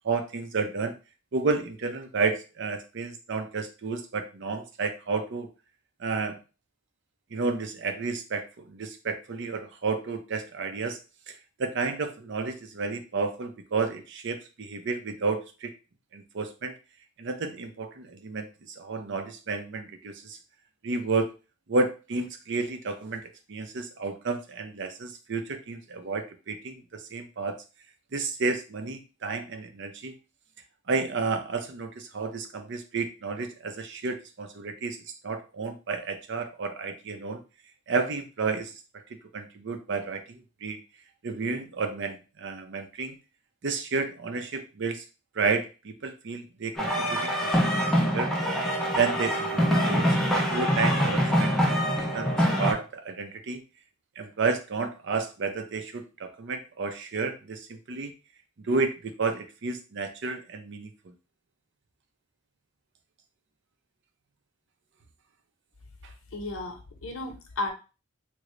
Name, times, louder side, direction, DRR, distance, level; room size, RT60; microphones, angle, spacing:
voice 1, 0.0-1.0 1.3-5.5 6.0-6.4 7.3-11.0 11.3-11.4 11.6-15.7 16.1-16.7 17.2-20.4 20.8-21.3 21.7-27.6 28.1-30.1 30.9-35.0 35.2-37.4 37.9-38.7 39.1-40.8 41.2-43.2 43.6-45.0 45.4-48.3 49.0-50.2 50.5-51.8 52.1-52.3 52.6-53.6 54.2-58.1 58.6-61.1, right 4 dB, 60° right, 7 dB, 0.6 m, -31 dB
sound 1, 46.8-52.7, equal, ahead, 0.6 m, -24 dB
voice 2, 66.3-67.7, left 2 dB, 85° left, 4 dB, 0.8 m, -34 dB
3.1 x 2.1 x 3.7 m, 0.31 s
head